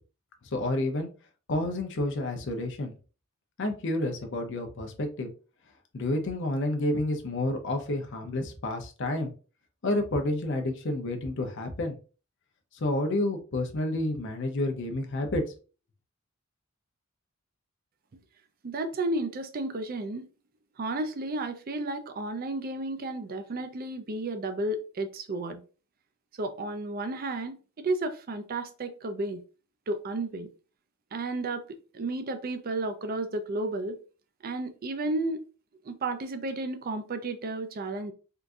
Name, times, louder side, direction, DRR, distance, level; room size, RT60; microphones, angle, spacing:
voice 1, 0.5-1.1 1.5-2.9 3.6-5.3 5.9-9.3 9.8-12.0 12.8-15.4, left 1 dB, 55° left, 0.6 m, -29 dB
voice 2, 18.6-20.3 20.8-25.6 26.4-29.4 29.9-30.5 31.1-31.6 31.9-34.0 34.4-35.4 35.9-38.1, right 2 dB, 45° right, 0.4 m, -32 dB
3.7 x 2.6 x 2.3 m
head